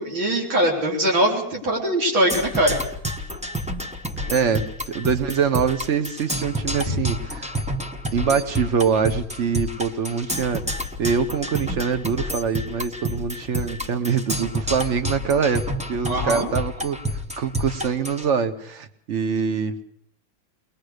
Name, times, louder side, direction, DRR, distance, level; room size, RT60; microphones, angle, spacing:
voice 1, 0.0-2.8 4.2-4.5 6.9-7.1 16.1-16.5, right 1 dB, 70° right, -1 dB, 4.6 m, -22 dB
Percussion, 2.3-18.3, equal, 10° right, 0.4 m, -29 dB
voice 2, 4.3-7.5 8.1-19.8, right 6 dB, 45° right, 10 dB, 1.0 m, -24 dB
21.0 x 20.5 x 6.5 m, 0.70 s
omnidirectional pair, 2.3 m